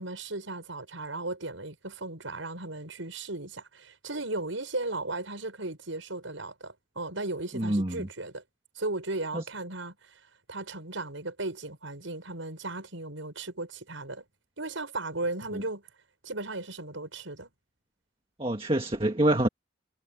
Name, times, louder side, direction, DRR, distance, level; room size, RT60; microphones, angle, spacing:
voice 1, 0.0-8.4 8.7-10.2 10.5-14.3 14.6-15.8 16.2-17.5, right 2 dB, 85° right, 6.2 m, -36 dB
voice 2, 7.5-8.1 9.3-9.4 18.4-19.5, right 1 dB, 30° right, 1.8 m, -26 dB
head